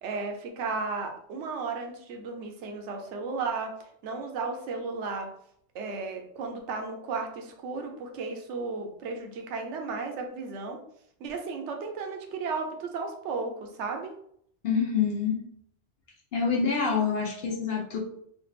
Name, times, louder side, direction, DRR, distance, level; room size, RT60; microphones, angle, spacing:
voice 1, 0.0-3.7 4.0-5.3 5.7-10.8 11.2-14.1, right 4 dB, 80° right, 3 dB, 0.9 m, -34 dB
voice 2, 14.6-15.4 16.3-18.0, left 6 dB, 65° left, -1 dB, 0.8 m, -26 dB
3.2 x 2.3 x 3.2 m, 0.68 s
omnidirectional pair, 1.2 m